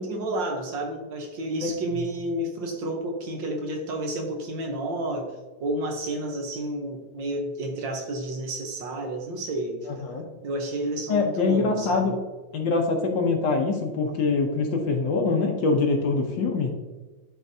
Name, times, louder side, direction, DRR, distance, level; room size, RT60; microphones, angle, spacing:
voice 1, 0.0-5.3 5.6-9.9 10.4-12.2, right 1 dB, 65° right, 2 dB, 1.5 m, -30 dB
voice 2, 1.6-2.1 10.0-10.2 11.1-12.1 12.5-16.7, left 4 dB, 65° left, 3 dB, 1.4 m, -24 dB
11.0 x 3.9 x 2.7 m, 1.3 s
omnidirectional pair, 2.3 m